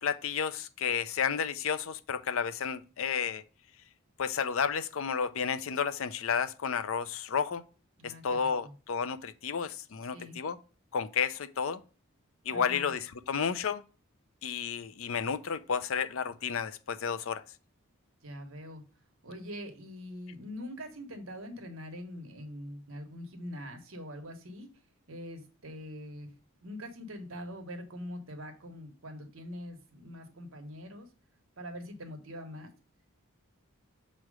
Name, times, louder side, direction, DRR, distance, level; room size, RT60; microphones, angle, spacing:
voice 1, 0.0-3.4 4.2-7.6 8.0-10.6 10.9-11.8 12.5-13.8 14.4-17.4, left 6 dB, 65° left, 0.5 m, -32 dB
voice 2, 8.0-8.7 10.0-10.4 12.5-12.9 18.2-18.8 19.2-24.7 25.1-26.3 26.6-31.1 31.6-32.7, equal, 65° right, 1.3 m, -43 dB
6.4 x 3.1 x 4.7 m
head